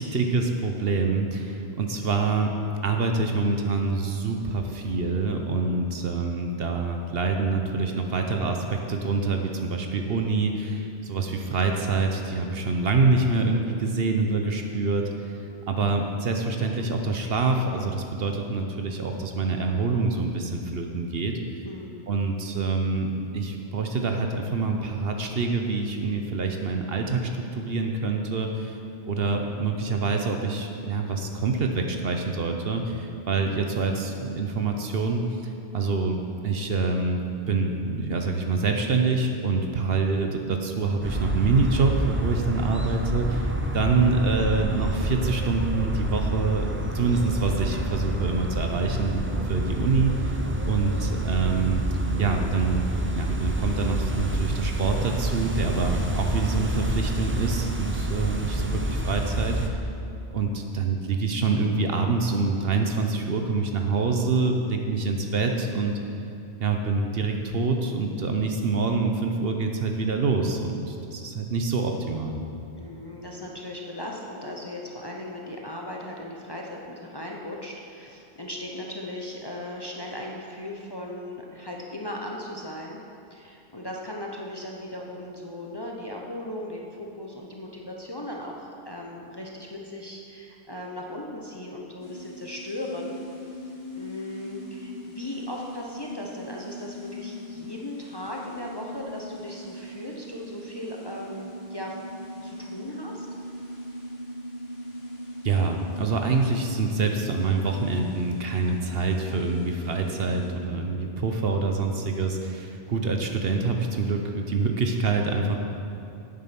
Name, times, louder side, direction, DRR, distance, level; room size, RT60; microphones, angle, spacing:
voice 1, 0.0-2.6 2.8-15.3 15.7-21.4 22.1-23.1 23.3-28.8 29.1-35.2 35.7-37.2 37.5-46.7 46.9-50.4 50.6-51.8 52.2-52.8 53.1-59.8 60.3-66.0 66.6-72.4 105.4-115.6, right 4 dB, 60° right, 4 dB, 1.0 m, -26 dB
voice 2, 21.6-22.0 50.4-50.7 72.7-83.0 83.3-93.2 94.0-102.0 102.4-103.3, left 1 dB, 25° left, -1 dB, 0.7 m, -37 dB
sound 1, 41.0-59.7, right 1 dB, 20° right, 0.3 m, -28 dB
sound 2, 92.0-110.5, equal, 60° left, 1.9 m, -40 dB
9.0 x 7.4 x 5.9 m, 2.6 s
omnidirectional pair, 1.2 m